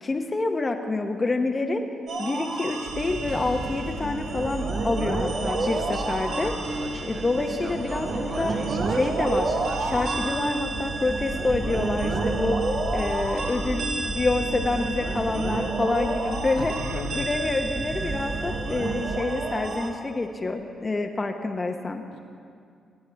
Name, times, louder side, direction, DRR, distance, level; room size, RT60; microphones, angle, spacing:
voice 1, 0.0-1.9 2.2-6.6 7.0-8.6 8.9-9.5 9.8-12.6 12.9-16.7 17.1-22.0, left 3 dB, 35° left, 4 dB, 0.8 m, -27 dB
sound 1, 2.1-19.9, right 3 dB, 65° right, 1.2 m, -30 dB
sound 2, 2.9-19.4, right 1 dB, 40° right, 1.3 m, -35 dB
voice 2, 16.5-17.5 22.1-22.2, left 5 dB, 85° left, 1 dB, 0.7 m, -36 dB
18.0 x 8.7 x 3.4 m, 2.3 s
supercardioid pair, 50°, 0 cm